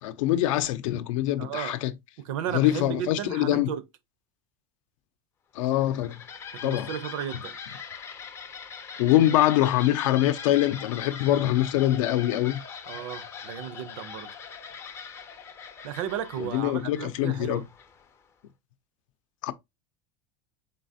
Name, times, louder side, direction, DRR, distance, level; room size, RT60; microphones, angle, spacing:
voice 1, 0.0-1.9 2.5-3.7 5.6-6.2 6.6-6.9 9.0-12.6 16.4-17.6 19.4-19.5, left 14 dB, 85° left, 0.6 m, -24 dB
voice 2, 1.4-1.8 2.2-3.8 6.5-7.5 12.9-14.3 15.8-17.6, right 9 dB, 80° right, 0.7 m, -34 dB
sound 1, 5.6-18.2, left 6 dB, 15° left, 0.3 m, -42 dB
4.0 x 3.8 x 2.7 m
supercardioid pair, 170°, 16 cm